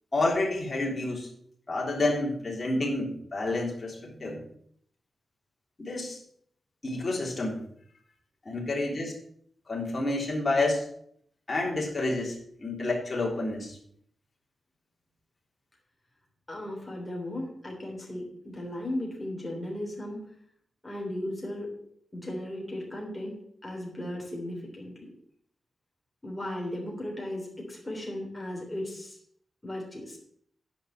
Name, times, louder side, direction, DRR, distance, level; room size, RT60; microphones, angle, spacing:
voice 1, 0.1-1.3 1.7-4.4 5.8-6.2 6.8-7.6 8.4-9.1 9.7-10.8 11.5-13.8, left 2 dB, 30° left, -3 dB, 3.3 m, -29 dB
voice 2, 16.5-20.2 20.8-21.7 22.1-23.3 23.6-25.1 26.2-29.2 29.6-30.2, left 1 dB, 10° left, -1 dB, 3.3 m, -36 dB
10.0 x 5.6 x 7.4 m, 0.67 s
wide cardioid pair, 165°, 0 cm